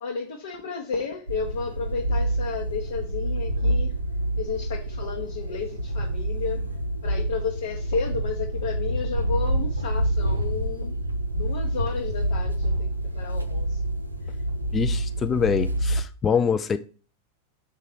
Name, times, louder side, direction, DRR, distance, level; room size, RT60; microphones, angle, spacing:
voice 1, 0.0-4.0 4.4-6.7 7.0-11.0 11.3-13.8 14.2-14.4, left 5 dB, 65° left, 0.9 m, -32 dB
sound 1, 1.3-16.0, right 1 dB, 85° right, 0.6 m, -27 dB
voice 2, 14.7-16.8, left 6 dB, 20° left, 0.4 m, -24 dB
5.8 x 3.7 x 4.7 m
figure-of-eight pair, 90°, 0 cm